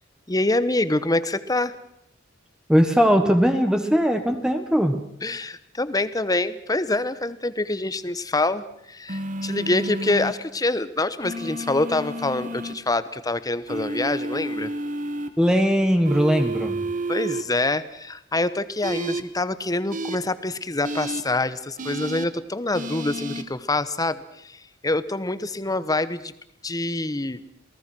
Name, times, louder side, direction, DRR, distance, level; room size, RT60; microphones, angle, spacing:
voice 1, 0.3-1.8 5.2-14.7 17.1-26.3 26.6-27.4, left 2 dB, 20° left, 13 dB, 1.1 m, -26 dB
voice 2, 2.7-5.0 15.4-16.9, equal, 5° right, 6 dB, 1.4 m, -19 dB
sound 1, 9.1-10.3 11.2-12.7 13.7-15.3 16.0-17.4 18.8-19.2 19.9-20.2 20.8-21.2 21.8-22.3 22.7-23.4, right 1 dB, 40° right, 1.6 m, -30 dB
28.0 x 18.5 x 6.2 m, 0.74 s
head